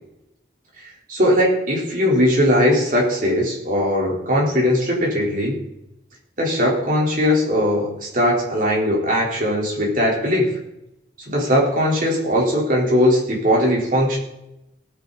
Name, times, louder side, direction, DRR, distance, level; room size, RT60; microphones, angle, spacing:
voice 1, 1.1-5.6 6.4-10.5 11.3-14.2, equal, 45° right, -3 dB, 4.3 m, -19 dB
18.0 x 8.7 x 4.2 m, 0.86 s
head